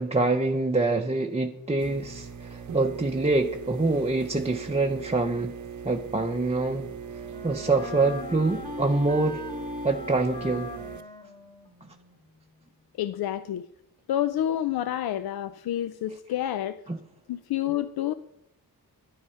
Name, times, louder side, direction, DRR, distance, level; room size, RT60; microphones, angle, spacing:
voice 1, 0.0-5.5 5.8-6.9 7.4-9.4 9.8-10.7 16.9-17.0, right 3 dB, 15° right, 0.7 m, -25 dB
sound 1, 1.8-11.0, right 7 dB, 50° right, 0.8 m, -40 dB
Wind instrument woodwind instrument, 6.4-12.2, left 2 dB, 10° left, 2.8 m, -40 dB
voice 2, 13.0-13.7 14.1-16.8 17.3-18.1, left 11 dB, 85° left, 0.5 m, -28 dB
9.5 x 9.3 x 5.6 m
cardioid pair, 60°, 36 cm